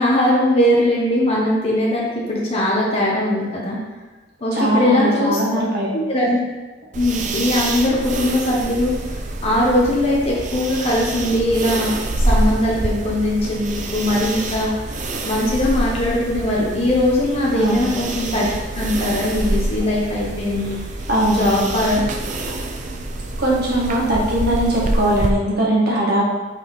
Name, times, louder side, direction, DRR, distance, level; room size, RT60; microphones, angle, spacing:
voice 1, 0.0-3.8 4.4-5.4 5.9-6.4 6.9-8.9 9.4-11.9 12.3-15.0 15.3-18.5 18.7-20.8 21.3-22.0, left 1 dB, 35° left, -5 dB, 0.9 m, -20 dB
voice 2, 4.5-5.9 17.5-17.9 21.1-21.7 23.4-26.2, right 1 dB, 60° right, -5 dB, 1.7 m, -20 dB
sound 1, 6.9-25.3, right 2 dB, 40° right, 0.5 m, -26 dB
5.4 x 4.5 x 4.0 m, 1.2 s
head